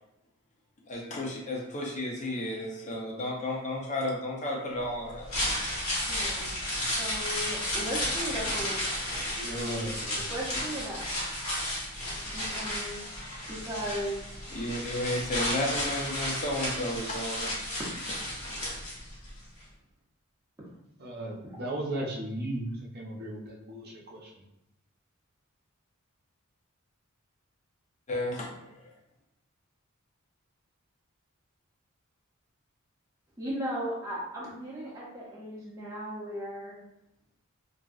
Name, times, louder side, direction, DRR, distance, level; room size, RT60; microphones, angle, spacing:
voice 1, 0.9-5.6 14.5-17.5 28.1-28.8, left 1 dB, 35° left, -2 dB, 0.6 m, -33 dB
sound 1, 5.1-19.3 19.6-19.7, left 1 dB, 65° left, 1.3 m, -33 dB
voice 2, 6.1-6.5 7.0-8.8 10.3-11.3 12.3-13.0 13.5-14.2 33.4-36.7, equal, 15° right, -7 dB, 0.7 m, -36 dB
voice 3, 9.2-10.2 21.0-24.4, right 1 dB, 50° right, -3 dB, 0.7 m, -36 dB
2.8 x 2.6 x 2.4 m, 0.84 s
head